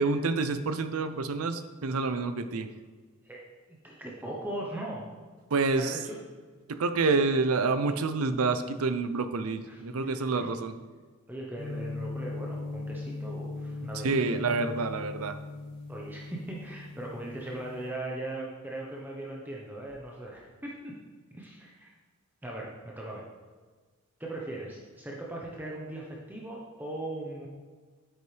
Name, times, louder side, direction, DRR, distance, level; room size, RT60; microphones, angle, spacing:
voice 1, 0.0-2.7 5.5-6.0 6.7-10.7 14.0-15.4, right 3 dB, 75° right, 10 dB, 0.6 m, -28 dB
voice 2, 3.8-5.1 5.7-6.2 9.6-10.5 11.3-14.4 15.9-21.0 21.3-22.0 22.4-23.2 24.2-27.5, right 1 dB, 10° right, -3 dB, 0.9 m, -39 dB
sound 1, 11.6-17.9, left 3 dB, 40° left, 2.6 m, -39 dB
9.0 x 8.2 x 3.4 m, 1.5 s
head